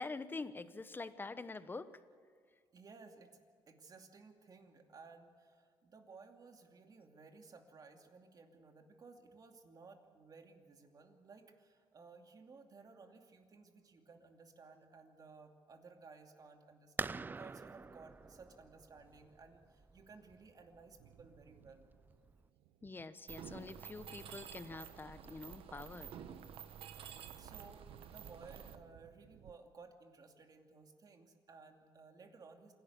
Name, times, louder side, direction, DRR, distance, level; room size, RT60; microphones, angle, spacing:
voice 1, 0.0-1.9 22.8-26.1, left 3 dB, 20° left, 13 dB, 1.0 m, -45 dB
voice 2, 2.7-3.4 3.7-21.9 27.4-32.7, right 4 dB, 40° right, 4 dB, 2.6 m, -58 dB
sound 1, 17.0-22.5, right 4 dB, 20° right, 0.4 m, -47 dB
Thunder, 19.8-29.5, right 12 dB, 90° right, 0.7 m, -63 dB
Mechanisms, 23.3-28.7, right 8 dB, 65° right, 1.3 m, -51 dB
27.0 x 12.0 x 8.4 m, 2.1 s
cardioid pair, 105°, 10 cm